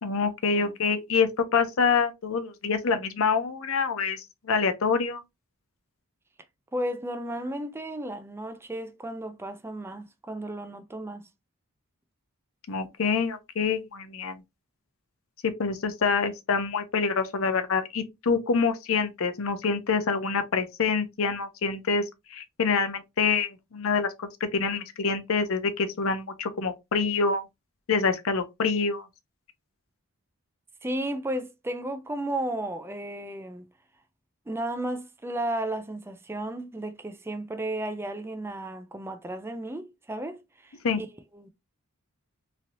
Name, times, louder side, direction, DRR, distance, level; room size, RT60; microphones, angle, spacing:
voice 1, 0.0-5.2 12.7-14.4 15.4-22.0 22.3-24.1 24.5-27.4 27.9-29.1 40.8-41.0, left 5 dB, 65° left, 0.6 m, -26 dB
voice 2, 6.7-11.3 30.8-33.7 34.5-41.1 41.3-41.5, right 1 dB, 10° right, 0.4 m, -34 dB
3.1 x 2.6 x 2.6 m
head